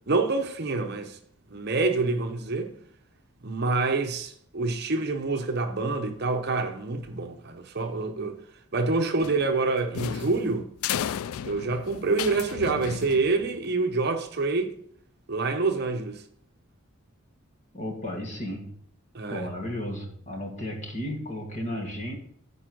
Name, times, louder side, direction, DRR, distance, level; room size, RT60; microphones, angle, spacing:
voice 1, 0.1-1.2 1.5-2.7 3.4-8.4 8.7-10.7 11.4-14.7 15.3-16.2 19.1-19.5, right 3 dB, 50° right, 0.8 m, -27 dB
sound 1, 9.2-13.7, left 9 dB, 80° left, 0.3 m, -34 dB
voice 2, 17.7-18.7 19.3-22.2, left 1 dB, 35° left, 1.8 m, -34 dB
9.6 x 4.6 x 6.1 m
head